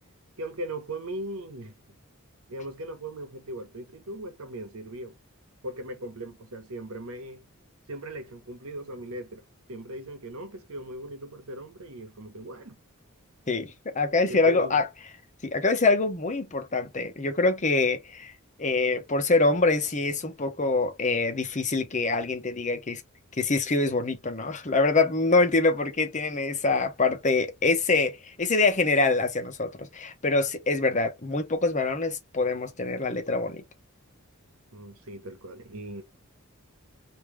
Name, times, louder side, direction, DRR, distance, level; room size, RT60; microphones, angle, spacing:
voice 1, 0.4-1.8 2.5-5.1 5.6-7.4 7.9-12.8 14.1-14.8 34.7-36.0, right 1 dB, 80° right, 1.2 m, -39 dB
voice 2, 13.5-14.9 15.4-18.3 18.6-23.0 23.4-33.6, left 3 dB, 35° left, 1.0 m, -25 dB
3.3 x 2.8 x 3.2 m
head